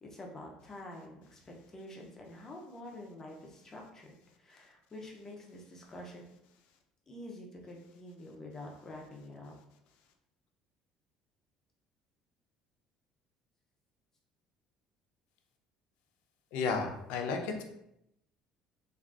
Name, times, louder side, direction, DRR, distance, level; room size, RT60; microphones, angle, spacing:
voice 1, 0.0-6.3 7.1-9.5, left 1 dB, 20° left, 0 dB, 0.5 m, -47 dB
voice 2, 16.5-17.6, left 4 dB, 80° left, 4 dB, 0.5 m, -33 dB
3.6 x 2.4 x 2.3 m, 0.80 s
cardioid pair, 150°, 2 cm